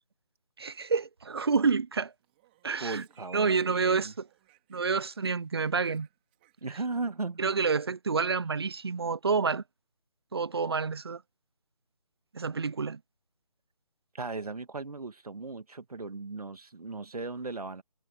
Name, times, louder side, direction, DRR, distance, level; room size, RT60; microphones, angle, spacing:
voice 1, 0.6-2.1 2.6-3.0 3.3-4.3 4.7-6.1 7.4-9.6 10.3-11.2 12.3-13.0, right 5 dB, 40° right, 0.6 m, -28 dB
Speech, 2.1-3.8 4.1-7.2, right 17 dB, 15° right, 4.0 m, -68 dB
voice 2, 2.8-4.1 6.6-7.5 14.1-17.8, right 3 dB, 70° right, 2.3 m, -37 dB
figure-of-eight pair, 170°, 20 cm